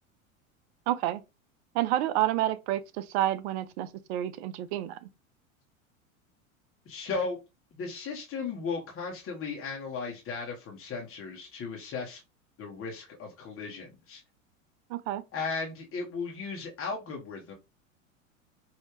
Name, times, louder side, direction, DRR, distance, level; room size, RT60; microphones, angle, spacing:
voice 1, 0.9-1.2 1.7-5.1 14.9-15.2, right 13 dB, 50° right, 0.5 m, -29 dB
voice 2, 6.8-7.4 7.7-12.2 12.6-14.2 15.3-17.5, left 4 dB, 30° left, 1.2 m, -36 dB
4.7 x 2.7 x 3.0 m
hypercardioid pair, 90°, 41 cm